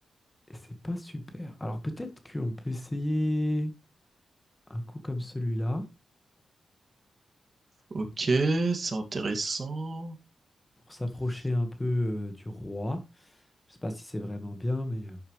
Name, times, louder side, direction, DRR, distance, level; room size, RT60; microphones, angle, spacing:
voice 1, 0.5-3.7 4.7-5.8 10.9-13.4 13.7-15.2, left 1 dB, 15° left, 1.6 m, -32 dB
voice 2, 7.9-10.2, right 3 dB, 40° right, 2.3 m, -28 dB
11.5 x 7.2 x 3.2 m
wide cardioid pair, 115°, 0 cm